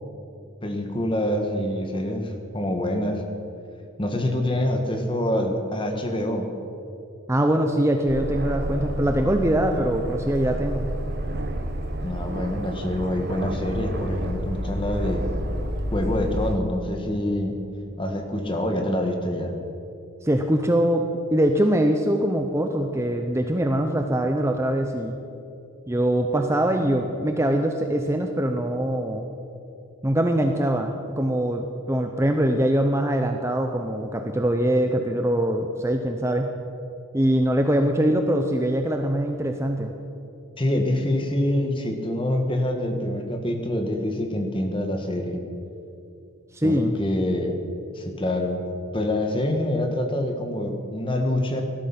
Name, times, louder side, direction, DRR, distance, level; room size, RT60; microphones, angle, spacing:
voice 1, 0.6-3.2 4.0-6.5 12.0-15.2 15.9-17.5 18.0-19.5 40.6-45.4 46.6-47.6 47.9-48.6 48.9-51.6, left 1 dB, 25° left, 4 dB, 1.5 m, -26 dB
voice 2, 7.3-10.9 20.2-21.1 21.3-25.2 25.9-29.3 30.0-36.5 37.1-39.9 46.5-47.0, right 1 dB, 15° right, 4 dB, 0.6 m, -23 dB
Aircraft, 8.1-16.6, equal, 50° right, 1.1 m, -30 dB
17.5 x 12.5 x 5.9 m, 2.7 s
head